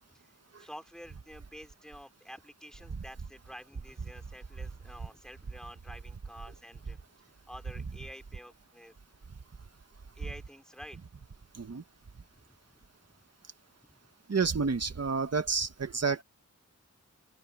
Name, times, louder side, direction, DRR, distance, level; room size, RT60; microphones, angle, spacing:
voice 1, 0.6-7.0 7.5-8.9 10.1-11.0 12.3-12.9 13.8-14.1, equal, ahead, 4.4 m, -49 dB
voice 2, 14.3-16.2, right 5 dB, 55° right, 1.6 m, -30 dB
open air
wide cardioid pair, 105°, 30 cm